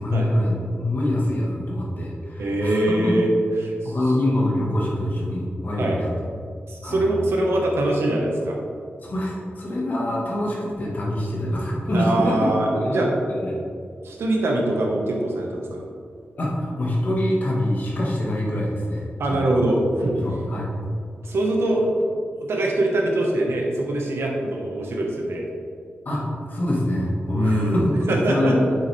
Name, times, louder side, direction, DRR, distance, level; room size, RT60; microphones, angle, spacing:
voice 1, 0.0-3.1 3.8-6.1 6.8-7.0 9.0-13.5 16.4-19.4 20.1-20.7 26.1-27.9 28.3-28.7, left 1 dB, 45° left, -3 dB, 1.8 m, -25 dB
voice 2, 2.4-3.3 3.6-4.2 5.8-6.0 6.7-8.6 11.9-13.1 14.0-15.8 19.2-20.4 21.2-21.9 22.4-25.5 27.3-27.8 28.1-28.6, right 1 dB, 80° right, -1 dB, 1.6 m, -23 dB
9.4 x 7.4 x 3.6 m, 2.3 s
wide cardioid pair, 170°, 4 cm